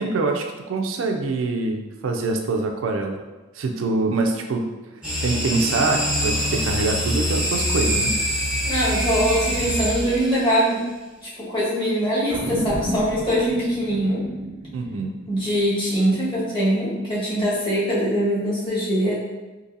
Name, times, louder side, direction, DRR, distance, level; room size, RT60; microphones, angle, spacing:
voice 1, 0.0-3.2 3.6-4.6 5.2-8.1 14.7-15.2, right 3 dB, 90° right, 4 dB, 0.4 m, -24 dB
sound 1, 5.0-10.5, equal, 5° right, 0.8 m, -24 dB
voice 2, 8.6-10.8 11.2-14.2 15.3-19.1, equal, 25° left, -9 dB, 1.3 m, -22 dB
sound 2, 12.3-17.1, equal, 30° right, 0.5 m, -33 dB
3.9 x 2.7 x 2.6 m, 1.2 s
head